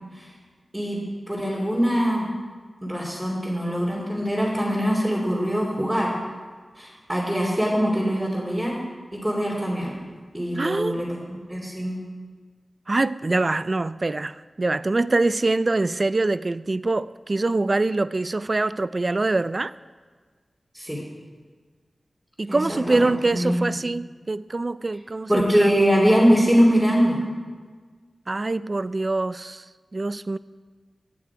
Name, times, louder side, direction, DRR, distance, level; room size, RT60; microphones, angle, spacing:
voice 1, 1.3-2.3 2.8-6.1 6.8-8.8 9.1-9.9 10.3-12.0 20.7-21.0 22.5-23.7 25.3-27.2, equal, 10° right, 3.0 m, -22 dB
voice 2, 10.6-11.0 12.9-19.7 22.4-25.7 28.3-29.6 29.9-30.4, right 2 dB, 40° right, 0.4 m, -24 dB
16.5 x 8.7 x 4.8 m
wide cardioid pair, 75°, 0 cm